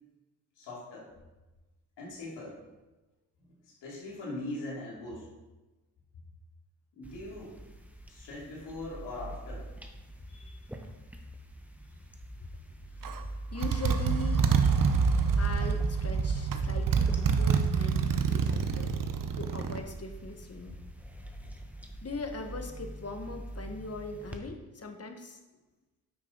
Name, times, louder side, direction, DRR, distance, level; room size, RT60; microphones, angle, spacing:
voice 1, 0.6-1.1 2.0-2.6 3.4-5.3 6.9-7.5 8.1-9.7 10.3-10.6, left 2 dB, 85° left, -5 dB, 2.9 m, -41 dB
sound 1, 7.0-24.4, right 1 dB, 5° right, 1.2 m, -44 dB
Motorcycle, 13.0-13.2 13.6-19.8, right 5 dB, 50° right, 0.9 m, -27 dB
voice 2, 13.5-14.5 15.4-18.9 19.3-20.8 22.0-25.4, left 2 dB, 35° left, 5 dB, 1.5 m, -40 dB
9.6 x 6.1 x 4.0 m, 1.1 s
supercardioid pair, 55°, 41 cm